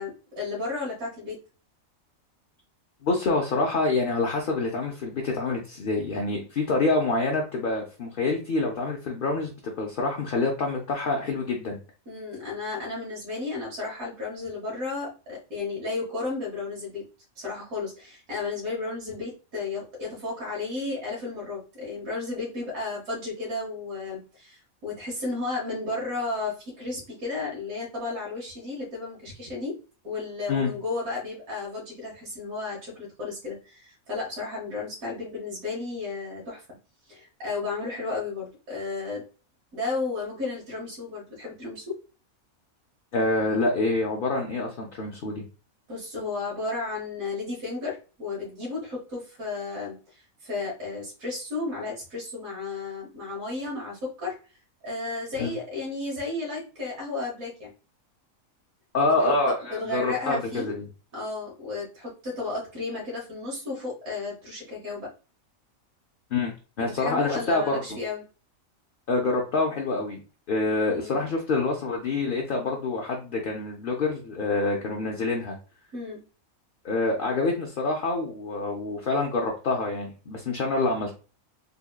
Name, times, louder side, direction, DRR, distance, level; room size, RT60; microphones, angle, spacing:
voice 1, 0.0-1.4 12.1-17.0 17.3-29.8 30.0-36.6 37.1-39.2 39.7-42.0 45.9-54.3 54.8-57.7 59.2-60.7 61.1-65.1 66.8-68.2 70.9-71.3 75.9-76.2, left 3 dB, 75° right, -4 dB, 1.6 m, -33 dB
voice 2, 3.0-9.5 9.8-11.8 30.5-30.7 43.1-45.4 55.4-55.5 58.9-60.9 66.3-67.8 69.1-70.2 70.5-75.6 76.8-81.2, left 3 dB, 55° left, 0 dB, 0.6 m, -26 dB
4.0 x 2.8 x 2.3 m, 0.35 s
omnidirectional pair, 1.5 m